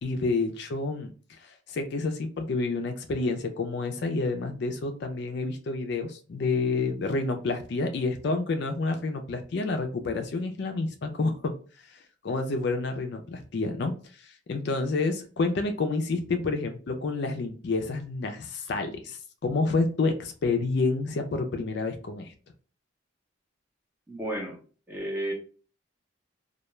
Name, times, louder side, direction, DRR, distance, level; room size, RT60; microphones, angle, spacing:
voice 1, 0.0-11.5 11.9-12.0 12.2-13.9 14.2-22.3, left 3 dB, 55° left, 5 dB, 0.4 m, -29 dB
voice 2, 24.1-24.6 24.9-25.3, right 1 dB, 10° right, -1 dB, 0.6 m, -32 dB
2.3 x 2.2 x 2.9 m, 0.38 s
head